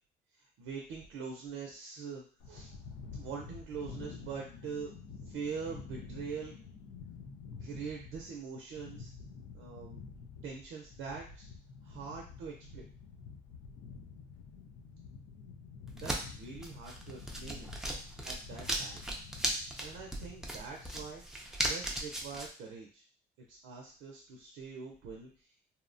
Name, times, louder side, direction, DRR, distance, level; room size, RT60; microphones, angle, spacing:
voice 1, 0.6-2.7 3.2-4.9 5.3-6.5 7.6-9.1 9.5-10.0 10.4-11.5 11.8-12.8 15.9-17.7 18.2-19.0 19.8-21.2 21.7-23.0 23.5-25.3, right 5 dB, 90° right, 0 dB, 0.5 m, -43 dB
sound 1, 2.4-21.1, left 5 dB, 80° left, 0.4 m, -49 dB
sound 2, 15.9-22.5, right 1 dB, ahead, 0.4 m, -37 dB
2.7 x 2.1 x 2.5 m, 0.40 s
cardioid pair, 90°, 20 cm